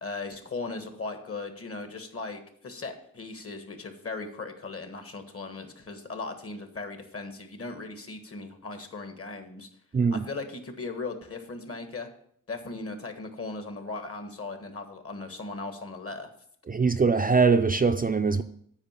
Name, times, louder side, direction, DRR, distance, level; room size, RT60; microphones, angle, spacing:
voice 1, 0.0-9.7 10.1-12.1 12.5-16.3, left 3 dB, 45° left, 1.5 m, -38 dB
voice 2, 16.7-18.4, right 4 dB, 25° right, 0.5 m, -22 dB
9.0 x 4.8 x 7.3 m
wide cardioid pair, 90°, 32 cm